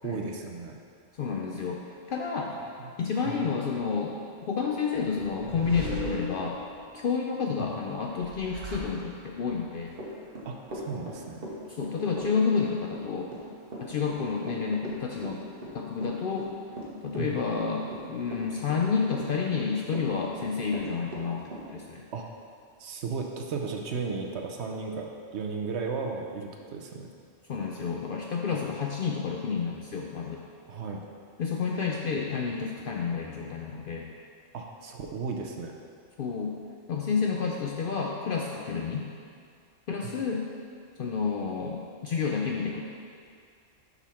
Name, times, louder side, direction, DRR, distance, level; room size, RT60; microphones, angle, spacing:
voice 1, 0.0-0.8 3.2-3.4 7.6-7.7 10.4-11.4 17.2-17.3 22.1-22.3 22.8-27.1 28.5-28.6 30.7-31.0 34.5-35.8, right 4 dB, 65° right, 2 dB, 0.9 m, -35 dB
voice 2, 1.2-2.5 3.0-4.2 4.5-6.6 6.9-9.9 11.7-13.3 13.8-15.4 15.7-16.5 17.0-22.0 27.5-30.4 31.4-34.1 36.2-36.6 36.9-39.1 39.9-40.5 41.0-42.8, left 5 dB, 60° left, 0 dB, 0.6 m, -30 dB
sound 1, 5.0-7.0 8.0-9.5, right 1 dB, 80° right, 1.3 m, -38 dB
Run / Walk footsteps, 9.9-21.7, right 1 dB, 50° right, 1.3 m, -39 dB
7.1 x 4.1 x 5.7 m, 2.3 s
omnidirectional pair, 1.3 m